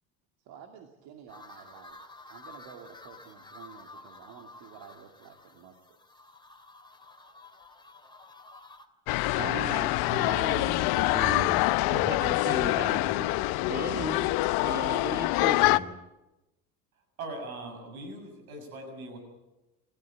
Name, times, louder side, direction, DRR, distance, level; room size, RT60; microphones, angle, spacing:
voice 1, 0.4-6.3, right 7 dB, 60° right, 4 dB, 2.5 m, -51 dB
sound 1, 1.3-8.9, left 2 dB, 10° left, 2.8 m, -51 dB
sound 2, 9.1-15.8, left 20 dB, 60° left, 0.8 m, -25 dB
voice 2, 9.1-14.3 14.6-15.9, right 3 dB, 25° right, 5 dB, 2.7 m, -37 dB
voice 3, 17.2-19.2, right 2 dB, 85° right, 6 dB, 6.7 m, -40 dB
27.5 x 14.0 x 8.5 m, 1.0 s
hypercardioid pair, 70°, 42 cm